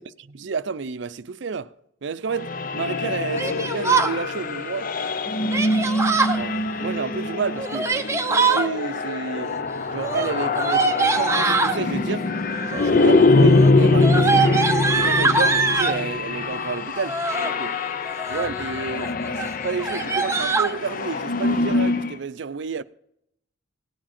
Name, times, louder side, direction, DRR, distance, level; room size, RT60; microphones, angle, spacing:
voice 1, 0.0-1.7 2.0-4.9 6.3-7.9 8.4-9.6 9.9-12.3 12.6-14.7 15.0-17.8 18.3-22.8, right 5 dB, 65° right, 0.5 m, -30 dB
sound 1, 2.4-22.2, left 3 dB, 45° left, 0.5 m, -23 dB
Yell, 3.4-4.1 5.5-6.4 7.6-8.7 10.0-11.8 12.6-13.0 13.4-16.0 16.9-17.5 18.1-18.6 19.0-19.1 19.4-19.5 19.8-20.7, right 4 dB, 15° right, 0.7 m, -23 dB
17.5 x 8.9 x 4.3 m
head